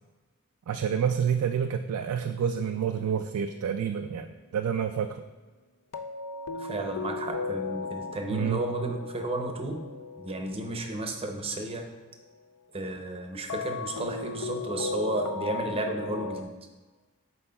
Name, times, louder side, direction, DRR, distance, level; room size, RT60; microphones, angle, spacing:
voice 1, 0.7-5.2 8.3-8.6, right 7 dB, 75° right, 7 dB, 0.3 m, -28 dB
sound 1, 2.5-3.9 5.9-11.6 13.5-16.4, left 4 dB, 90° left, 0.5 m, -37 dB
voice 2, 6.6-9.8 10.2-11.9 12.7-16.5, right 2 dB, 25° right, 3 dB, 0.6 m, -33 dB
11.0 x 4.4 x 2.3 m, 1.3 s
head